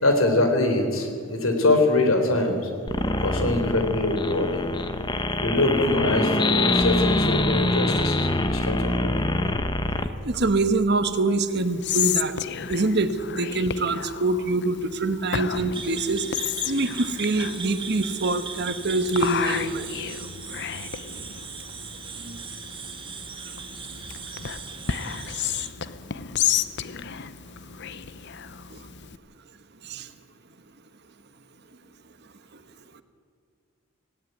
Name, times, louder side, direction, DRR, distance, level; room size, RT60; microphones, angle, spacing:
voice 1, 0.0-2.7 3.2-4.7 5.4-9.2, left 2 dB, 75° left, 5 dB, 3.7 m, -23 dB
sound 1, 2.9-10.1, left 2 dB, 20° left, 1.0 m, -24 dB
voice 2, 10.3-12.4 12.7-19.9 22.2-22.4 28.7-28.8 29.8-30.1, right 2 dB, 50° right, 10 dB, 1.2 m, -25 dB
Whispering, 11.6-29.2, left 9 dB, 55° left, 0.8 m, -32 dB
sound 2, 15.7-25.7, right 6 dB, 25° right, 1.7 m, -38 dB
18.0 x 17.0 x 9.3 m, 2.1 s
head